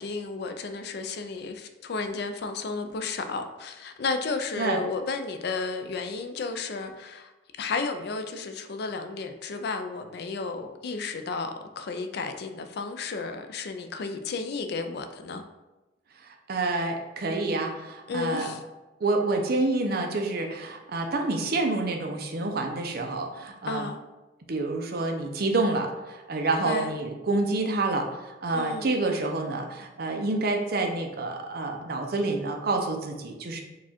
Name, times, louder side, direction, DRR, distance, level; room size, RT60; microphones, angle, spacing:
voice 1, 0.0-7.3 7.6-15.4 18.1-18.6 23.7-24.0 26.6-26.9 28.5-28.9, left 4 dB, 60° left, 7 dB, 0.4 m, -33 dB
voice 2, 16.5-18.5 19.0-23.8 24.5-33.6, right 2 dB, 55° right, 3 dB, 0.6 m, -28 dB
4.7 x 2.3 x 4.2 m, 1.1 s
head